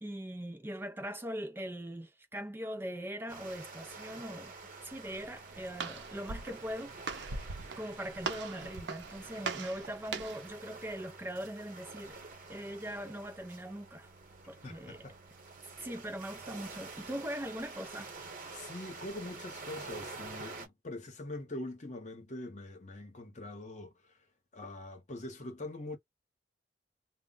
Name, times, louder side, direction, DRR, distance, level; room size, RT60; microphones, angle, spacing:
voice 1, 0.0-4.5 4.8-6.9 7.8-12.2 12.5-14.1 14.5-15.1 15.7-18.1, equal, 15° right, 0.4 m, -41 dB
sound 1, 3.3-20.7, right 3 dB, 50° right, 0.9 m, -48 dB
Walk footsteps, 5.1-10.5, right 4 dB, 90° right, 0.6 m, -41 dB
voice 2, 14.6-15.1 18.5-23.9 24.5-26.0, left 2 dB, 45° left, 0.8 m, -43 dB
2.1 x 2.0 x 3.7 m
head